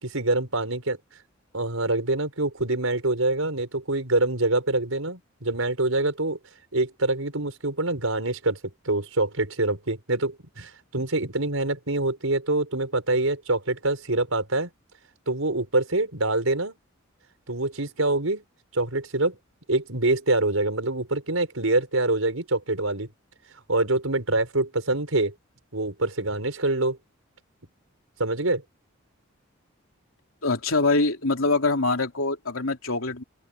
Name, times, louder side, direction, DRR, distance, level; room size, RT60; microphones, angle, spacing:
voice 1, 0.0-1.0 1.5-6.4 6.7-8.6 8.8-14.7 15.3-16.8 17.5-18.4 18.7-19.3 19.7-23.1 23.7-25.3 25.7-27.0 28.2-28.6, right 2 dB, 85° right, 4.8 m, -25 dB
voice 2, 30.4-33.2, left 3 dB, 80° left, 3.2 m, -24 dB
open air
head